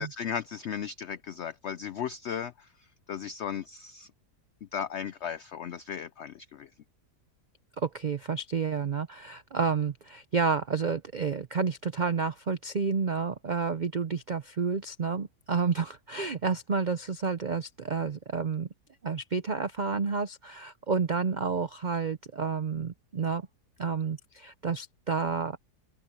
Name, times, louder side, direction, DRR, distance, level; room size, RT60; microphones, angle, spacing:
voice 1, 0.0-4.1 4.7-6.7, left 8 dB, 85° left, 0.6 m, -36 dB
voice 2, 7.8-18.7 19.0-23.5 23.8-25.6, right 5 dB, 75° right, 0.4 m, -30 dB
open air
omnidirectional pair, 1.8 m